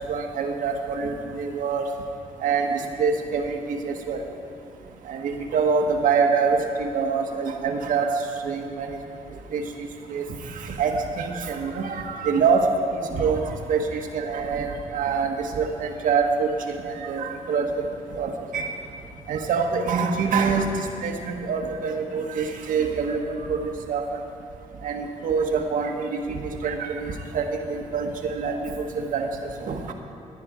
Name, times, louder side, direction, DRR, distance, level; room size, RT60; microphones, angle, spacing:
voice 1, 0.1-1.8 2.4-4.3 5.1-8.1 8.4-8.9 9.5-10.2 10.6-12.6 13.1-13.4 13.7-17.7 18.1-18.7 19.3-20.6 21.0-23.2 23.5-24.0 24.8-29.3 29.7-29.9, right 5 dB, 75° right, 4 dB, 1.3 m, -25 dB
15.5 x 9.7 x 4.9 m, 2.7 s
supercardioid pair, 60°, 14 cm